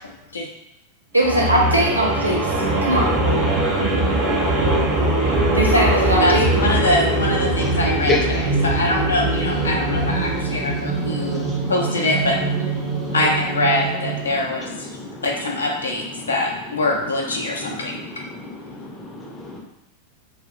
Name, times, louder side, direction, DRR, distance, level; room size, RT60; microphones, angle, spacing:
voice 1, 1.1-2.5 2.8-3.1 5.5-6.5, right 1 dB, 85° right, -2 dB, 0.5 m, -19 dB
sound 1, 1.2-14.4, right 2 dB, 30° right, 0.6 m, -22 dB
voice 2, 6.2-12.4 13.1-14.7 15.2-18.0, left 2 dB, 70° left, 0 dB, 0.4 m, -23 dB
voice 3, 10.6-11.7 12.8-13.1 14.9-15.1 16.2-16.3 17.6-18.6 18.8-19.6, left 3 dB, 20° left, -2 dB, 0.5 m, -30 dB
2.3 x 2.1 x 2.5 m, 0.87 s
figure-of-eight pair, 90°, 0 cm